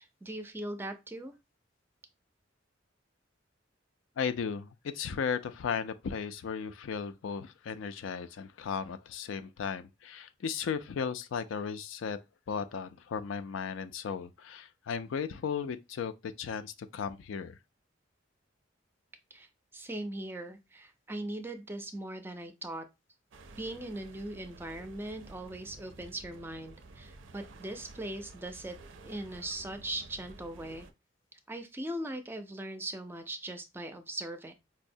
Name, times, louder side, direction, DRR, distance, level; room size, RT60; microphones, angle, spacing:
voice 1, 0.0-1.3 19.3-19.5 19.7-22.9 23.6-28.8 29.0-30.9 31.3-34.5, right 1 dB, 10° right, 0.4 m, -40 dB
voice 2, 4.2-12.2 12.5-17.6, left 6 dB, 80° left, 0.4 m, -35 dB
sound 1, 23.3-30.9, right 3 dB, 75° right, 0.5 m, -52 dB
4.5 x 2.0 x 2.6 m
head